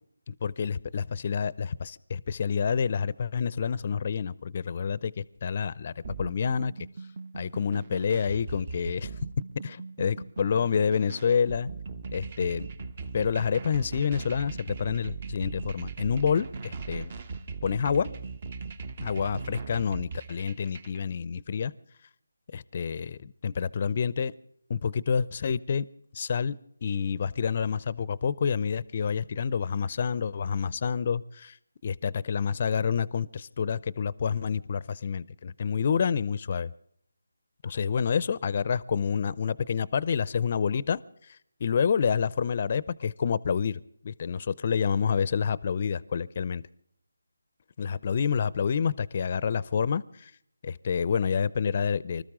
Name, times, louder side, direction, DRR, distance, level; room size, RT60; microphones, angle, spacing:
voice 1, 0.3-5.9 6.2-6.7 7.3-9.1 9.6-11.7 12.1-12.7 13.1-17.1 17.6-18.1 19.0-21.7 22.5-24.3 24.7-25.8 26.1-31.6 31.8-36.7 37.6-41.0 41.6-46.6 47.8-50.3 50.6-52.2, left 6 dB, 35° left, 20 dB, 0.6 m, -28 dB
sound 1, 6.0-21.0, right 4 dB, 35° right, 1.0 m, -39 dB
25.5 x 13.5 x 3.7 m, 0.68 s
figure-of-eight pair, 160°, 0 cm